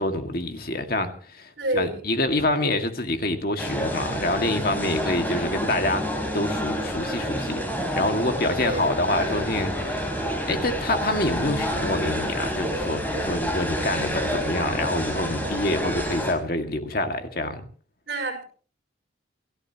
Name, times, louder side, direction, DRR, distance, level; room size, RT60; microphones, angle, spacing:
voice 1, 0.0-6.0 6.3-7.6 8.0-10.1 10.5-17.6, left 1 dB, 50° left, 2.0 m, -26 dB
voice 2, 1.6-2.0 8.6-9.0 15.4-15.6 18.1-18.4, right 2 dB, 60° right, 5.9 m, -29 dB
sound 1, 3.6-16.3, equal, 10° left, 3.9 m, -28 dB
29.0 x 13.5 x 3.0 m
head